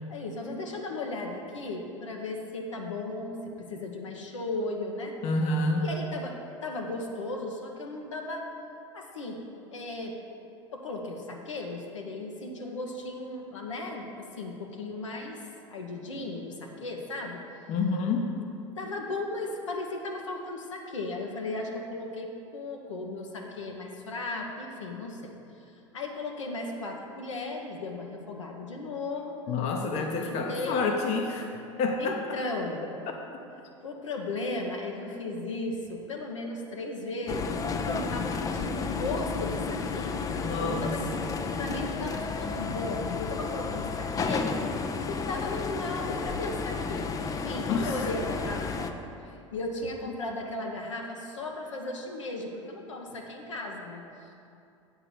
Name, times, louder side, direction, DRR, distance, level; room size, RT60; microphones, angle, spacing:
voice 1, 0.1-5.2 5.8-8.5 8.9-9.4 9.7-10.1 10.7-17.4 18.7-25.3 25.9-29.4 29.9-30.9 32.0-32.9 33.8-54.5, left 2 dB, 75° left, 1 dB, 1.0 m, -36 dB
voice 2, 5.2-5.9 17.7-18.3 29.5-32.4 40.4-41.0 47.7-48.1, left 3 dB, 45° left, 3 dB, 0.9 m, -28 dB
sound 1, 37.3-48.9, left 4 dB, 20° left, 0.5 m, -32 dB
8.7 x 4.6 x 6.9 m, 2.6 s
figure-of-eight pair, 80°, 16 cm